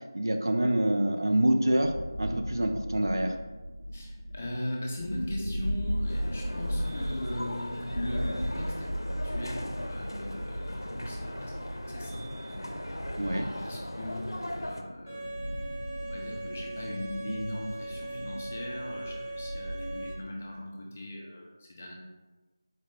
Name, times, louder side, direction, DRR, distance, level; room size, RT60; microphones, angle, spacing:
voice 1, 0.1-1.9 2.2-3.3 13.2-13.5, right 1 dB, 65° right, 5 dB, 0.4 m, -26 dB
sound 1, 1.7-20.0, equal, 50° right, 0.9 m, -37 dB
voice 2, 3.9-8.9 9.2-11.5 11.9-12.7 13.2-15.7 16.0-21.9, left 1 dB, 20° left, -1 dB, 0.4 m, -39 dB
sound 2, 6.1-14.8, left 1 dB, 80° left, 0.5 m, -39 dB
Bowed string instrument, 15.1-20.1, right 2 dB, 15° right, 1.0 m, -40 dB
4.0 x 2.5 x 3.6 m, 1.2 s
figure-of-eight pair, 170°, 2 cm